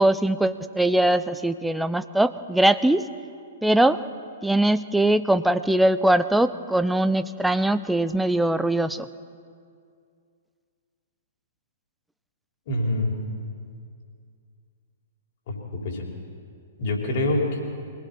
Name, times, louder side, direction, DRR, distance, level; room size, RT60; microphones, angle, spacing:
voice 1, 0.0-3.1 3.6-4.0 4.4-9.1, right 1 dB, 5° right, 13 dB, 0.5 m, -21 dB
voice 2, 12.7-13.1 15.5-16.1 16.8-17.6, left 1 dB, 45° left, -1 dB, 5.0 m, -25 dB
25.5 x 18.5 x 5.8 m, 2.3 s
figure-of-eight pair, 110°, 0 cm